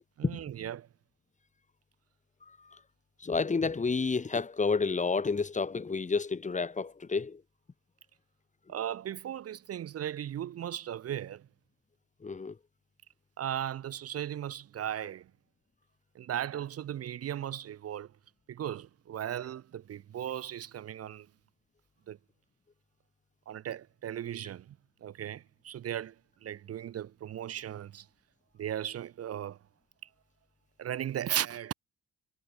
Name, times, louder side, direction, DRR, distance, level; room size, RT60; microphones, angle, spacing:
voice 1, 0.2-0.9 8.7-11.5 13.4-15.3 16.1-18.1 18.5-21.3 22.1-22.2 23.5-26.2 26.4-28.1 28.6-29.6 30.8-31.7, right 10 dB, 50° right, 0.8 m, -37 dB
voice 2, 3.2-7.4 12.2-12.5, left 4 dB, 25° left, 1.2 m, -30 dB
cardioid pair, 90°, 30 cm